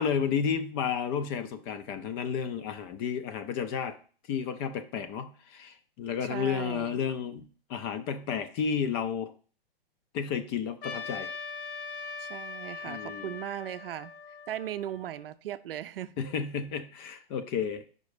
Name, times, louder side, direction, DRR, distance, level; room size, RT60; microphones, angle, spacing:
voice 1, 0.0-4.0 4.3-9.3 10.1-11.3 12.9-13.3 16.2-17.8, left 7 dB, 25° left, 10 dB, 0.5 m, -32 dB
voice 2, 6.2-7.0 12.2-14.1 14.5-16.5, right 11 dB, 65° right, 12 dB, 0.5 m, -38 dB
Trumpet, 10.8-15.3, left 4 dB, 60° left, 1.0 m, -41 dB
5.3 x 4.1 x 4.9 m, 0.40 s
hypercardioid pair, 130°, 30 cm